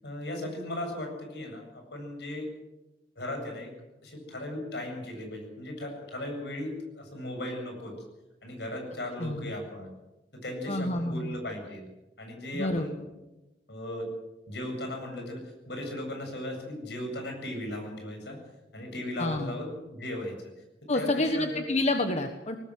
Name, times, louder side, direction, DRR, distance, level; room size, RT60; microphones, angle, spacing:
voice 1, 0.0-2.5 3.2-3.7 4.0-7.9 8.4-9.9 10.3-11.9 12.2-13.0 13.7-14.1 14.5-15.4 15.7-18.4 18.7-20.3 20.9-21.7, left 1 dB, 70° left, 3 dB, 7.9 m, -37 dB
voice 2, 9.2-9.5 10.7-11.4 12.5-12.8 19.2-19.5 20.9-22.6, left 1 dB, 40° left, 6 dB, 1.4 m, -28 dB
20.5 x 19.0 x 7.9 m, 1.0 s
head